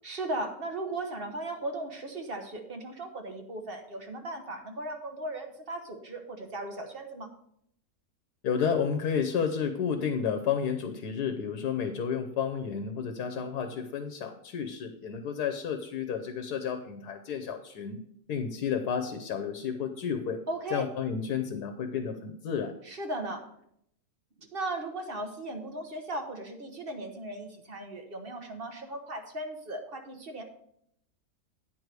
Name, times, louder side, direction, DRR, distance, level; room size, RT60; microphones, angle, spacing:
voice 1, 0.0-7.3 20.5-20.8 22.8-23.5 24.4-30.4, right 2 dB, 40° right, 4 dB, 1.1 m, -37 dB
voice 2, 8.4-18.0 18.3-20.4 20.7-22.7, left 7 dB, 90° left, 7 dB, 1.3 m, -31 dB
9.3 x 4.7 x 6.6 m, 0.71 s
omnidirectional pair, 1.6 m